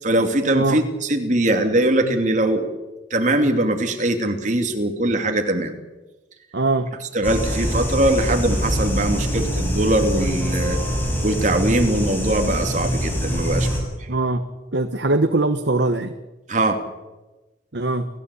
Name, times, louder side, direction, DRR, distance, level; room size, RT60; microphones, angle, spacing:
voice 1, 0.0-2.7 3.1-5.7 7.1-10.8 11.2-13.7 16.5-16.8, right 1 dB, 45° right, 5 dB, 3.0 m, -21 dB
voice 2, 6.5-6.9 14.1-14.4 14.7-16.1 17.7-18.1, right 2 dB, 90° right, 7 dB, 1.3 m, -21 dB
sound 1, 7.2-13.8, equal, 10° left, 7.5 m, -24 dB
29.5 x 16.0 x 8.5 m, 1.1 s
head